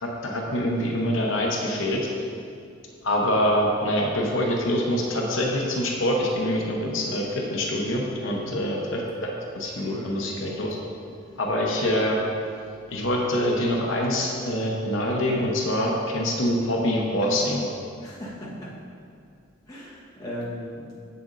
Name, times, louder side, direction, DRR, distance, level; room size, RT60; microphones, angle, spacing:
voice 1, 0.0-2.1 3.0-10.8 11.4-12.2 12.9-17.6, left 1 dB, 65° left, -1 dB, 0.8 m, -25 dB
voice 2, 8.2-8.6 9.8-10.1 18.0-18.7 19.7-21.0, equal, 20° left, -7 dB, 1.2 m, -37 dB
7.4 x 6.8 x 2.6 m, 2.4 s
head